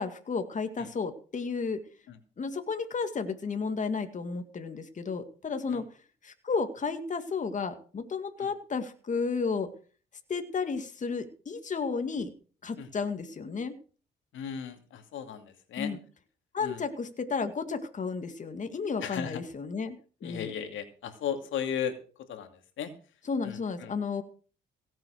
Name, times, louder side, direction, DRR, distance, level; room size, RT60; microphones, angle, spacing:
voice 1, 0.0-1.8 2.4-5.9 6.2-9.7 10.3-12.3 12.6-13.8 15.8-16.0 16.5-20.0 20.2-20.5 23.2-24.2, left 5 dB, 40° left, 8 dB, 2.1 m, -32 dB
voice 2, 14.3-15.9 16.6-16.8 19.0-19.4 20.2-22.0 22.3-22.5 22.8-22.9 23.4-23.9, left 8 dB, 80° left, 7 dB, 2.5 m, -35 dB
17.0 x 7.6 x 6.4 m, 0.39 s
cardioid pair, 90°, 20 cm